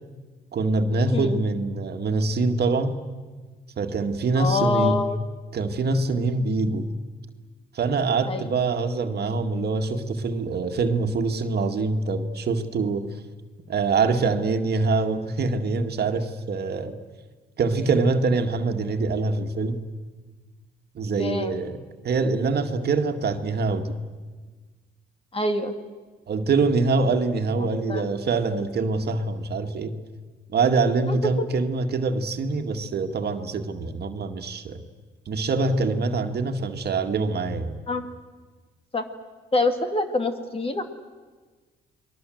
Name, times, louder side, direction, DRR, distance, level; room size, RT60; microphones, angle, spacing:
voice 1, 0.5-3.0 3.8-5.0 5.5-6.9 7.7-13.2 13.7-17.0 17.6-19.8 20.9-21.8 22.0-24.0 26.3-29.9 30.5-34.8 35.3-37.8, right 3 dB, 55° right, 5 dB, 2.0 m, -24 dB
voice 2, 4.4-5.2 8.3-8.5 21.2-21.5 25.3-25.7 27.6-28.0 31.1-31.5 37.9-38.0 38.9-39.0 39.5-40.8, left 2 dB, 30° left, 7 dB, 2.5 m, -25 dB
29.0 x 21.5 x 7.8 m, 1.4 s
cardioid pair, 90°, 20 cm